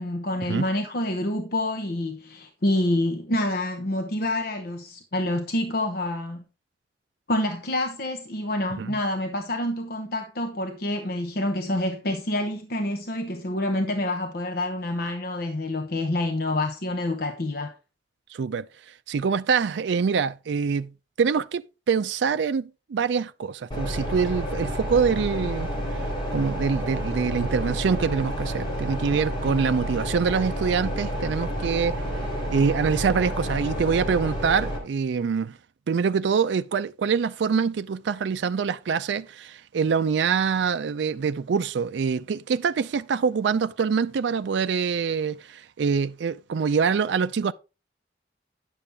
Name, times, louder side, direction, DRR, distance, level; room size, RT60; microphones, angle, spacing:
voice 1, 0.0-6.4 7.3-17.7, left 1 dB, 55° left, 0.9 m, -27 dB
voice 2, 18.3-18.6 19.1-20.9 21.2-25.7 26.3-32.0 32.5-35.6 35.9-47.5, right 6 dB, 75° right, 0.4 m, -25 dB
sound 1, 23.7-34.8, equal, 25° left, 3.4 m, -30 dB
9.9 x 7.0 x 3.5 m
head